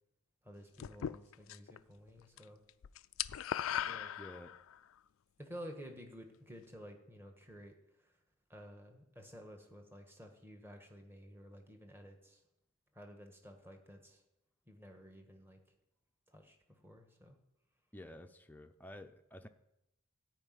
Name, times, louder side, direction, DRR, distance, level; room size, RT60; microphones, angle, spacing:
voice 1, 0.4-2.6 3.8-4.1 5.4-8.2 8.5-12.4 12.9-14.2 14.6-15.6 16.3-17.4, equal, 10° right, 4 dB, 1.4 m, -53 dB
sound 1, 0.8-1.8 2.1-2.4 2.7-4.8, left 10 dB, 70° left, 0.3 m, -38 dB
voice 2, 4.2-4.5 17.9-19.5, left 1 dB, 10° left, 6 dB, 0.6 m, -51 dB
13.5 x 5.1 x 9.2 m, 0.84 s
head